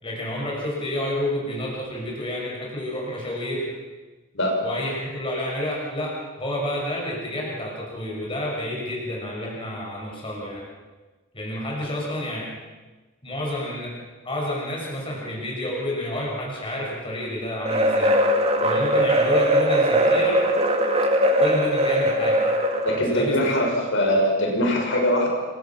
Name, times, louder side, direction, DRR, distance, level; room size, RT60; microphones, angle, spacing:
voice 1, 0.0-3.7 4.6-10.6 11.3-12.5 13.2-14.0 14.2-18.2 18.6-20.4 21.4-22.4 23.0-23.6, left 1 dB, 25° left, -3 dB, 6.3 m, -29 dB
sound 1, 17.6-23.1, equal, 30° right, 2.4 m, -20 dB
voice 2, 22.8-25.3, equal, 60° left, 0 dB, 6.3 m, -22 dB
28.5 x 24.0 x 6.0 m, 1.2 s
head